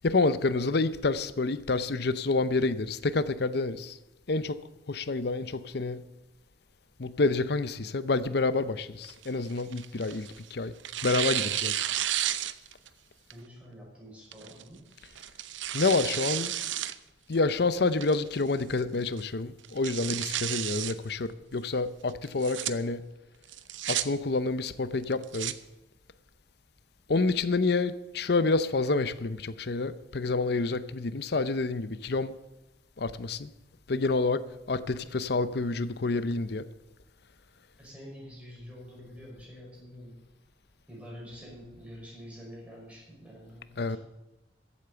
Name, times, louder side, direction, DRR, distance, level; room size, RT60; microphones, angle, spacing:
voice 1, 0.0-4.0 4.3-4.6 4.9-6.0 7.0-10.7 11.0-11.7 15.7-16.5 17.3-23.0 23.9-25.5 27.1-32.3 33.0-33.5 33.9-34.4 34.7-36.6 43.8-44.0, left 3 dB, 60° left, 14 dB, 0.7 m, -28 dB
Tearing, 9.0-10.4 10.8-12.9 13.3-13.4 14.3-14.6 15.2-16.9 17.3-17.4 18.0-18.4 18.8-18.9 19.2-19.3 19.6-20.9 22.2-22.7 23.5-24.0 25.0-25.5, right 12 dB, 85° right, 0.7 m, -32 dB
voice 2, 13.3-14.9 37.8-40.2 40.9-44.0, equal, 5° right, -4 dB, 5.9 m, -47 dB
14.5 x 8.4 x 6.9 m, 0.96 s
head